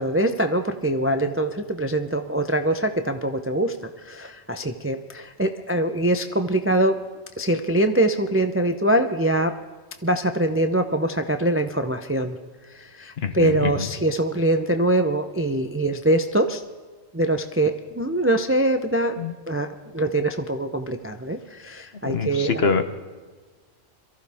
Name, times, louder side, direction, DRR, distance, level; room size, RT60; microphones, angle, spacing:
voice 1, 0.0-7.0 7.4-9.6 10.0-12.4 12.7-16.6 17.1-19.2 19.5-19.7 19.9-22.6, right 1 dB, 15° right, 7 dB, 0.4 m, -23 dB
voice 2, 13.2-13.9 19.2-19.3 22.1-23.0, left 4 dB, 55° left, 8 dB, 1.2 m, -25 dB
23.0 x 14.5 x 3.5 m, 1.4 s
omnidirectional pair, 1.3 m